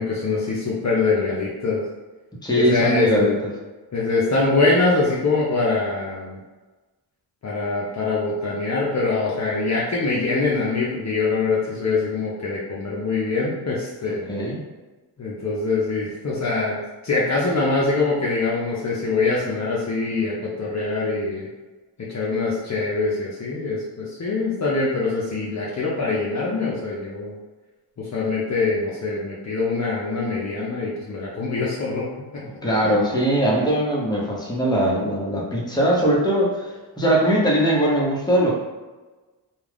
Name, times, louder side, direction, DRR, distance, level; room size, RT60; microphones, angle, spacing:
voice 1, 0.0-1.8 2.6-3.3 3.9-6.4 7.4-14.3 15.2-16.8 17.0-21.5 22.0-27.4 28.0-32.4 32.8-32.9, left 3 dB, 40° left, -5 dB, 0.6 m, -23 dB
voice 2, 2.4-3.5 14.1-14.6 32.6-38.6, right 1 dB, 10° left, -4 dB, 0.9 m, -21 dB
2.3 x 2.3 x 3.4 m, 1.2 s
cardioid pair, 60°, 45 cm